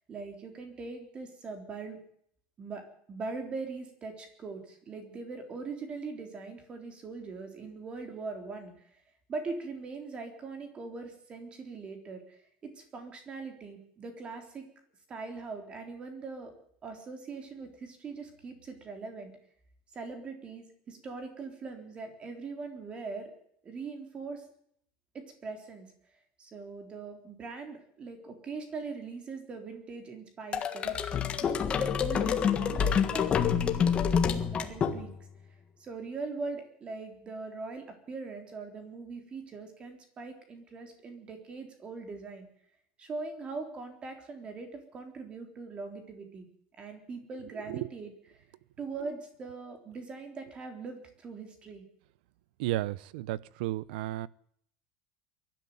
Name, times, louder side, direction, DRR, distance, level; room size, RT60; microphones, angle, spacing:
voice 1, 0.1-2.0 2.6-9.0 9.3-14.6 15.1-16.5 16.8-19.4 19.9-23.3 23.6-24.4 25.1-25.9 26.4-35.1 35.8-42.5 43.0-46.5 46.8-48.4 48.8-51.8, right 4 dB, 20° right, 5 dB, 3.8 m, -41 dB
sound 1, 30.5-35.4, left 7 dB, 20° left, 1.6 m, -27 dB
voice 2, 52.6-54.3, right 16 dB, 70° right, 21 dB, 0.8 m, -33 dB
22.5 x 12.0 x 9.4 m, 0.67 s
cardioid pair, 170°, 5 cm